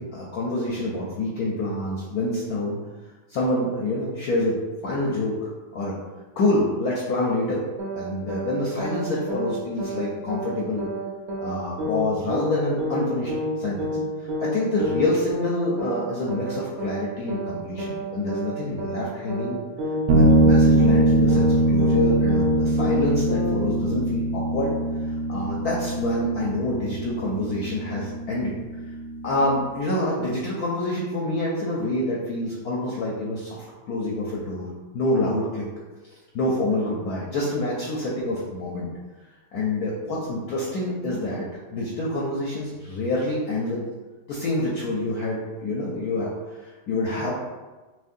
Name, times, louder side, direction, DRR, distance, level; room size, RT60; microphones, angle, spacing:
voice 1, 0.0-2.8 3.3-6.0 6.4-7.6 8.0-10.9 11.4-19.6 20.1-24.7 25.0-28.5 29.2-34.7 34.9-35.6 36.3-38.9 39.5-43.9 44.3-47.3, left 2 dB, 70° left, -4 dB, 0.9 m, -27 dB
sound 1, 7.8-8.0 8.3-8.5 8.8-9.0 9.3-9.5 9.8-10.0 10.3-10.5 10.8-11.0 11.3-11.5 11.8-12.0 12.3-12.5 12.8-13.0 13.3-13.5 13.8-14.0 14.3-14.5 14.8-15.0 15.3-15.5 15.8-16.0 16.3-16.5 16.8-17.0 17.3-17.5 17.8-18.0 18.3-18.5 18.8-19.0 19.3-19.5 19.8-20.0 20.3-20.5 20.8-21.0 21.3-21.5 21.8-22.0 22.3-22.5 22.8-23.0 23.3-23.5, left 1 dB, 50° right, 0.8 m, -29 dB
sound 2, 20.1-29.6, right 1 dB, 80° right, 1.4 m, -22 dB
6.1 x 2.3 x 2.6 m, 1.2 s
omnidirectional pair, 2.2 m